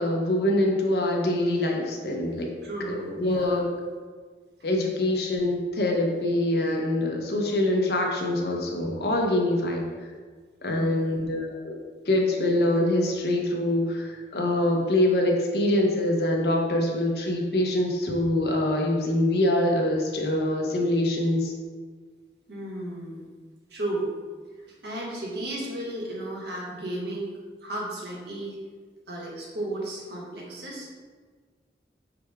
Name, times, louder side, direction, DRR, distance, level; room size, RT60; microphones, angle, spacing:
voice 1, 0.0-2.5 2.9-3.7 4.6-9.9 10.6-11.8 12.1-21.5, left 1 dB, 65° left, 0 dB, 0.7 m, -24 dB
voice 2, 2.6-3.6 10.6-11.2 22.5-23.3 23.7-24.1 24.6-28.6 29.1-30.9, right 1 dB, 75° right, -4 dB, 1.2 m, -34 dB
4.9 x 2.3 x 4.6 m, 1.5 s
head